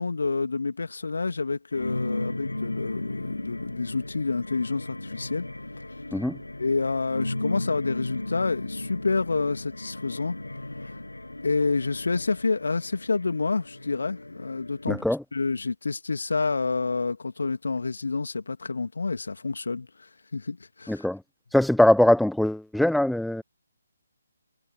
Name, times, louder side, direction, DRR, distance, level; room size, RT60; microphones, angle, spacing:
voice 1, 0.0-5.5 6.6-10.4 11.4-15.0 15.3-19.9 20.3-21.1, left 4 dB, 60° left, 2.6 m, -28 dB
sound 1, 1.7-15.0, left 2 dB, 75° left, 7.5 m, -36 dB
voice 2, 14.9-15.2 20.9-21.2 21.5-23.4, left 1 dB, ahead, 0.4 m, -21 dB
figure-of-eight pair, 140°, 0 cm